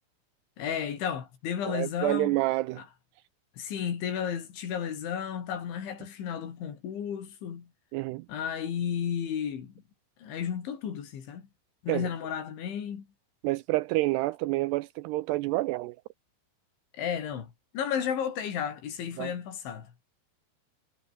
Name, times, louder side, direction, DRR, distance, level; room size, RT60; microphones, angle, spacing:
voice 1, 0.6-2.4 2.8-2.9 3.6-7.7 8.3-9.7 10.2-11.5 11.8-13.1 16.9-19.9, left 8 dB, 85° left, 6.0 m, -33 dB
voice 2, 1.7-2.8 7.9-8.3 11.9-12.1 13.4-16.0 19.2-19.3, right 19 dB, 85° right, 2.4 m, -28 dB
omnidirectional pair, 5.3 m